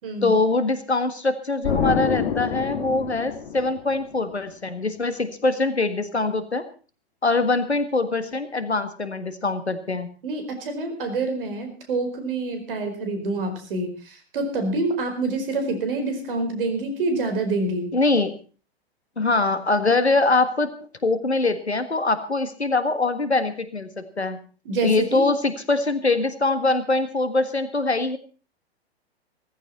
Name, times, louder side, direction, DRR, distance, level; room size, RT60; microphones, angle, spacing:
voice 1, 0.2-6.7 7.2-10.1 17.9-18.3 19.2-20.7 21.0-23.9 24.2-24.4 24.8-28.2, left 3 dB, 85° left, 11 dB, 1.8 m, -23 dB
Explosion, 1.6-4.3, left 7 dB, 50° left, 2.3 m, -27 dB
voice 2, 10.2-17.9 24.6-25.3, right 2 dB, 55° right, 6 dB, 4.7 m, -27 dB
17.0 x 14.5 x 4.3 m, 0.38 s
figure-of-eight pair, 100°, 32 cm